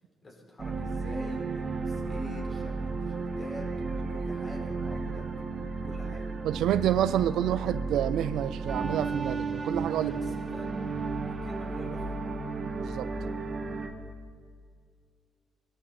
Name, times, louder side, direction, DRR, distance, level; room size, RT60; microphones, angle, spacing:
voice 1, 0.2-3.7 4.1-5.2 5.8-6.3 9.9-10.9 11.4-12.2, left 2 dB, 40° left, -1 dB, 4.9 m, -46 dB
sound 1, 0.6-13.9, right 3 dB, 40° right, 1.7 m, -33 dB
voice 2, 6.4-10.2 12.8-13.1, right 11 dB, 80° right, 15 dB, 0.5 m, -28 dB
22.5 x 13.5 x 4.4 m, 2.1 s
cardioid pair, 90°, 0 cm